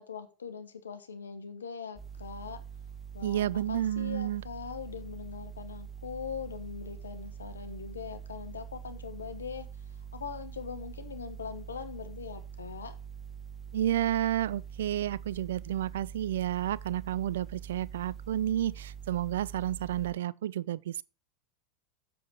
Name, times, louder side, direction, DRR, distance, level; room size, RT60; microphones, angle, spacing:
voice 1, 0.0-2.6 3.1-9.7 10.1-13.0, left 6 dB, 85° left, 1.2 m, -41 dB
sound 1, 2.0-20.1, right 7 dB, 5° left, 1.9 m, -44 dB
voice 2, 3.2-4.4 13.7-21.0, right 12 dB, 75° right, 0.3 m, -31 dB
7.7 x 6.9 x 4.4 m
hypercardioid pair, 85°, 0 cm